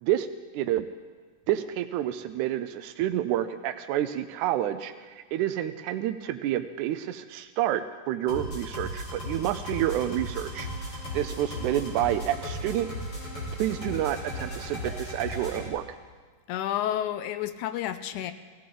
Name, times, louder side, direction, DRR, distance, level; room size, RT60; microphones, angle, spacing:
voice 1, 0.5-0.9 1.5-10.7 11.1-12.9 13.6-15.8, right 12 dB, 80° right, 9 dB, 1.8 m, -29 dB
sound 1, 8.3-15.7, equal, 40° left, 4.4 m, -36 dB
sound 2, 10.5-15.7, right 2 dB, 5° right, 4.2 m, -49 dB
voice 2, 16.5-18.3, left 11 dB, 80° left, 11 dB, 1.9 m, -30 dB
17.5 x 15.5 x 3.8 m, 1.4 s
omnidirectional pair, 3.8 m